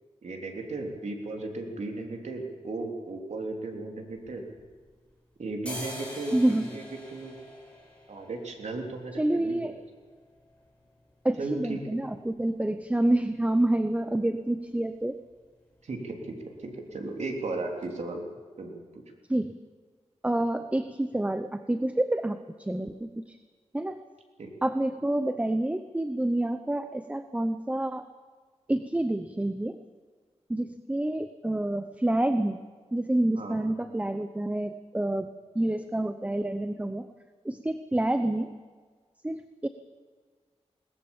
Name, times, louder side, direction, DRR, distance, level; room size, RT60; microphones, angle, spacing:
voice 1, 0.2-4.4 5.4-7.4 8.1-9.7 11.4-11.8 15.8-16.3 16.6-18.2 18.6-18.8 24.4-24.5 33.4-33.6, right 2 dB, 75° right, 2 dB, 3.5 m, -35 dB
sound 1, 4.1-5.1 5.5-13.2 13.5-13.6 13.9-14.4 14.7-14.9 15.2-15.5 15.7-16.4 16.8-16.9 17.4-17.5 17.8-17.9, left 1 dB, 10° left, 7.1 m, -46 dB
voice 2, 6.3-6.7 9.2-9.8 11.2-15.2 19.3-19.6 20.2-23.4 23.7-24.0 24.6-28.1 28.7-29.8 30.5-32.6 32.9-35.3 35.5-37.1 37.4-38.5 39.2-39.7, right 1 dB, 10° right, 9 dB, 0.8 m, -28 dB
21.0 x 19.5 x 7.3 m, 1.5 s
wide cardioid pair, 105°, 12 cm